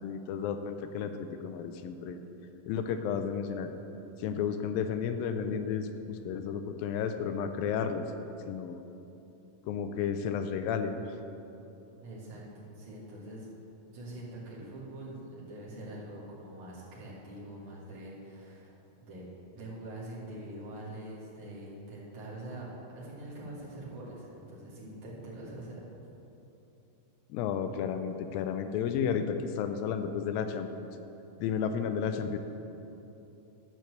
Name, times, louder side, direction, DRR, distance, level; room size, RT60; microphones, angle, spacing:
voice 1, 0.0-2.2 2.7-3.7 4.2-8.1 8.5-8.8 9.7-11.0 27.3-30.9 31.4-32.4, left 7 dB, 80° left, 8 dB, 2.3 m, -32 dB
voice 2, 12.0-12.4 12.8-13.5 13.9-18.7 19.0-19.3 19.5-25.8, right 1 dB, 55° right, -8 dB, 3.6 m, -44 dB
13.5 x 4.6 x 7.8 m, 3.0 s
omnidirectional pair, 4.3 m